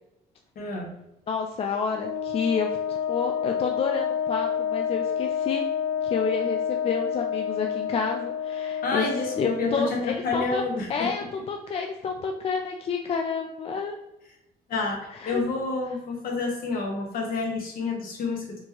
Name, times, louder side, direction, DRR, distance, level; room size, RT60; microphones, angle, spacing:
voice 1, 0.5-0.9 8.8-11.1 14.7-18.6, left 3 dB, 60° left, 0 dB, 1.3 m, -29 dB
voice 2, 1.3-5.6 6.0-9.0 9.4-10.6 10.9-14.0 15.1-15.4, left 5 dB, 35° left, 3 dB, 0.4 m, -29 dB
Wind instrument woodwind instrument, 1.9-9.7, left 8 dB, 75° left, 0.7 m, -29 dB
4.4 x 3.0 x 2.9 m, 0.88 s
cardioid pair, 110°, 17 cm